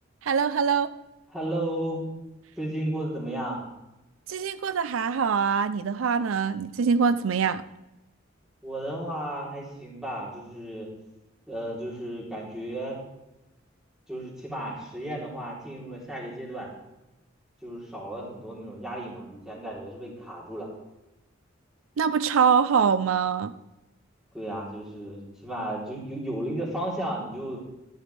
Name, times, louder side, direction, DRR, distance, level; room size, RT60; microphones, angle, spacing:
voice 1, 0.2-0.9 4.3-7.6 22.0-23.5, right 6 dB, 80° right, 14 dB, 0.5 m, -24 dB
voice 2, 1.3-2.0 2.6-3.6 8.6-10.9 11.5-13.0 14.1-16.7 17.6-20.7 24.3-27.6, right 1 dB, 5° right, -5 dB, 3.4 m, -34 dB
14.0 x 11.0 x 3.4 m, 0.96 s
head